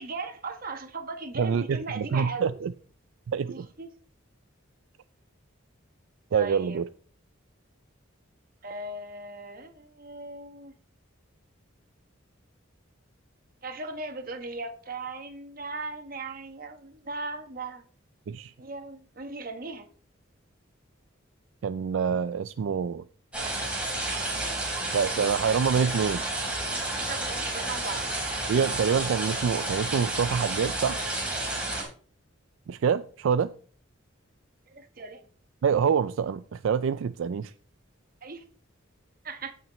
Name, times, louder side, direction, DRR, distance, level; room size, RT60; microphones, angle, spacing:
voice 1, 0.0-2.6 3.4-3.9 6.3-6.8 8.6-10.7 13.6-17.8 18.6-19.9 26.9-28.1 31.7-31.9 34.7-35.2 38.2-38.4 39.2-39.5, right 3 dB, 45° right, 7 dB, 1.2 m, -38 dB
voice 2, 1.4-2.7 3.3-3.7 6.3-6.9 18.3-18.5 21.6-23.0 24.9-26.2 28.5-31.0 32.7-33.5 35.6-37.5, right 6 dB, 75° right, 13 dB, 0.3 m, -26 dB
sound 1, 23.3-31.8, right 2 dB, 5° right, 3.6 m, -31 dB
16.0 x 5.9 x 3.1 m, 0.43 s
head